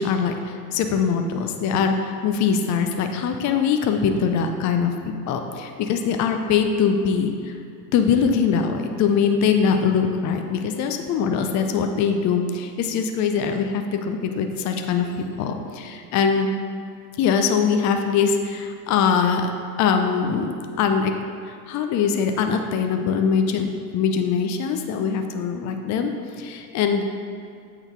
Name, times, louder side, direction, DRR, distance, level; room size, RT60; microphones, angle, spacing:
voice 1, 0.0-7.5 7.9-15.1 15.4-16.5 17.2-19.5 19.8-21.1 21.5-23.7 23.9-26.1 26.4-27.0, left 6 dB, 35° left, 5 dB, 0.6 m, -22 dB
7.9 x 3.9 x 4.5 m, 2.4 s
hypercardioid pair, 90°, 50 cm